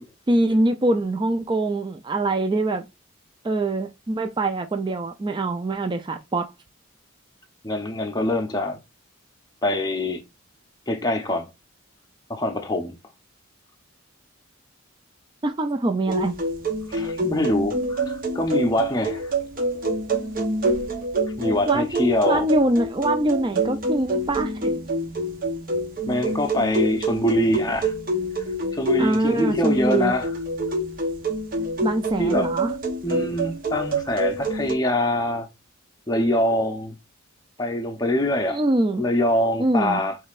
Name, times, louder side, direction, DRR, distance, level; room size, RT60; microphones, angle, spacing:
voice 1, 0.3-2.8 3.4-6.5 15.4-16.3 21.7-24.8 29.0-30.1 31.8-32.7 38.5-39.0 39.6-40.0, right 2 dB, 20° right, 0.4 m, -23 dB
voice 2, 7.6-8.8 9.6-10.2 10.9-11.5 12.3-13.0 16.9-19.3 21.4-22.5 26.1-27.9 28.7-30.3 32.2-32.5 33.0-35.5 36.1-37.0 37.6-38.6 39.0-40.2, left 1 dB, 20° left, 0.6 m, -24 dB
sound 1, 16.1-34.7, right 1 dB, 40° right, 0.8 m, -27 dB
5.4 x 3.2 x 2.4 m
head